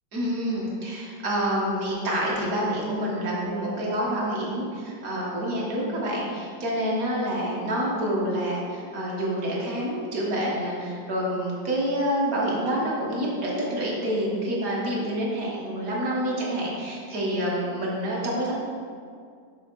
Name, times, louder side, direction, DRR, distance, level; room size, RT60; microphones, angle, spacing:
voice 1, 0.1-18.5, equal, 55° right, -4 dB, 1.4 m, -27 dB
6.2 x 3.7 x 4.4 m, 2.3 s
omnidirectional pair, 2.1 m